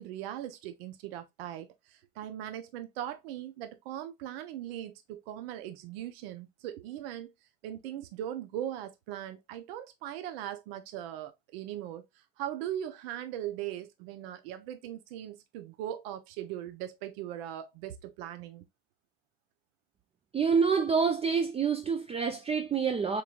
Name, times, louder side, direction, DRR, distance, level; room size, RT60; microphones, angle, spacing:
voice 1, 0.0-7.3 7.6-18.6 22.3-22.4, right 11 dB, 70° right, 0.7 m, -39 dB
voice 2, 20.3-23.2, right 6 dB, 20° right, 0.4 m, -27 dB
3.6 x 3.1 x 2.3 m
hypercardioid pair, 75°, 31 cm